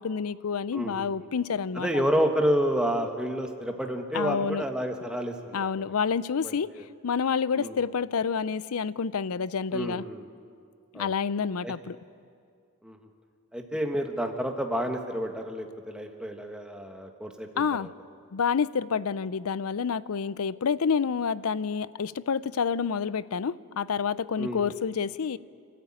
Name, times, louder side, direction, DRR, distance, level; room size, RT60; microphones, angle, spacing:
voice 1, 0.0-1.9 4.1-4.6 5.5-6.7 7.0-10.0 10.9-12.0 17.6-17.9 18.3-25.4, left 6 dB, 80° left, 18 dB, 0.5 m, -28 dB
voice 2, 0.7-1.3 1.7-5.9 6.4-6.8 7.5-7.8 9.7-10.2 10.9-11.1 11.6-11.7 12.8-13.0 13.5-17.9 24.4-24.6, equal, 5° right, 3 dB, 1.5 m, -30 dB
29.5 x 12.5 x 8.9 m, 2.3 s
head